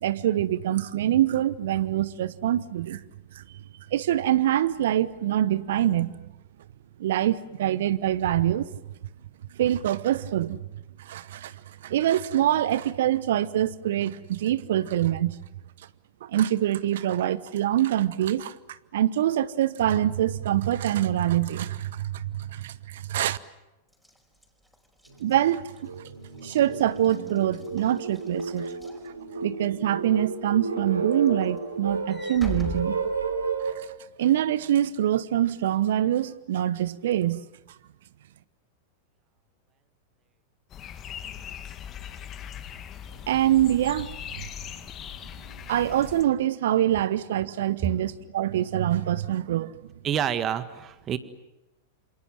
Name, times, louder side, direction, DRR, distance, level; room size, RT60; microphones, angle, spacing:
voice 1, 0.0-3.0 3.4-3.5 3.9-6.2 7.0-8.7 9.6-10.6 11.0-11.5 11.8-15.4 16.2-18.5 18.9-23.4 25.2-25.6 26.4-28.7 29.4-33.0 33.6-33.7 34.2-37.4 43.3-44.4 45.7-49.7, right 12 dB, 60° right, 1.0 m, -25 dB
Walk footsteps / Slam, 23.9-29.7 30.2-30.4 30.8-33.8, left 1 dB, ahead, 5.2 m, -42 dB
sound 1, 25.1-25.2 25.7-33.7, right 4 dB, 80° right, 3.5 m, -32 dB
sound 2, 40.7-46.2, left 9 dB, 30° left, 2.0 m, -40 dB
voice 2, 50.0-51.2, right 9 dB, 30° right, 1.7 m, -27 dB
28.5 x 26.5 x 7.5 m
figure-of-eight pair, 95°, 0 cm